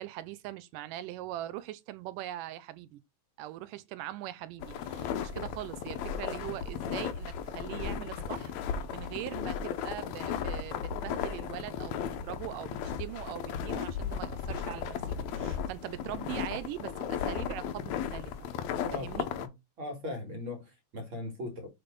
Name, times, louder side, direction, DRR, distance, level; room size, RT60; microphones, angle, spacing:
voice 1, 0.0-3.0 3.4-15.0 15.3-18.3 18.9-19.3, right 14 dB, 85° right, 2.2 m, -41 dB
sound 1, 4.6-19.5, left 7 dB, 70° left, 1.9 m, -35 dB
voice 2, 18.9-19.5 19.8-21.7, left 2 dB, 40° right, 2.5 m, -39 dB
6.5 x 3.9 x 5.2 m
omnidirectional pair, 3.9 m